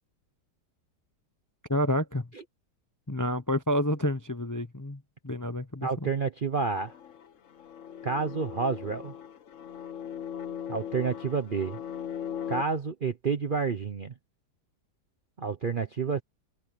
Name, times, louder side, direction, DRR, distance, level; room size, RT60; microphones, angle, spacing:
voice 1, 1.7-2.3 3.1-6.1, left 1 dB, 15° left, 0.6 m, -29 dB
voice 2, 5.8-6.9 8.0-9.1 10.7-11.8 12.5-14.1 15.4-16.2, right 5 dB, 45° right, 0.7 m, -29 dB
sound 1, 6.7-12.6, left 9 dB, 55° left, 1.2 m, -39 dB
omnidirectional pair, 1.8 m